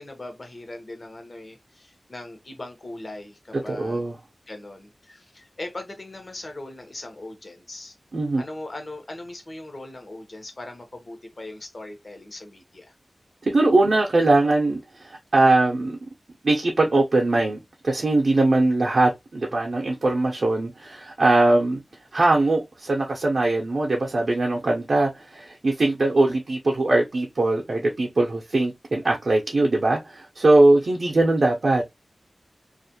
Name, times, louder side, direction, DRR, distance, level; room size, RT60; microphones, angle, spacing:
voice 1, 0.0-4.1 4.5-7.9 8.4-13.0, left 2 dB, 55° left, 0.8 m, -39 dB
voice 2, 3.7-4.1 8.1-8.4 13.4-16.0 16.4-21.8 22.1-31.8, right 2 dB, 75° right, 0.5 m, -21 dB
2.4 x 2.1 x 2.7 m
wide cardioid pair, 80°, 0 cm